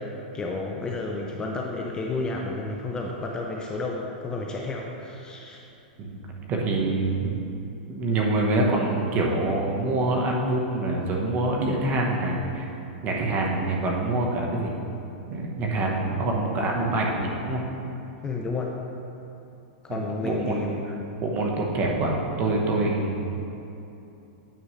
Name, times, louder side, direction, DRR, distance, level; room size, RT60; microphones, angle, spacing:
voice 1, 0.0-5.6 18.2-18.8 19.8-20.8, left 3 dB, 15° left, -1 dB, 0.5 m, -31 dB
voice 2, 6.5-7.4 7.9-12.6 13.0-14.7 15.3-17.6 19.9-20.7 21.2-23.2, right 2 dB, 30° right, -1 dB, 1.0 m, -25 dB
9.0 x 6.2 x 3.2 m, 2.9 s
supercardioid pair, 150°, 5 cm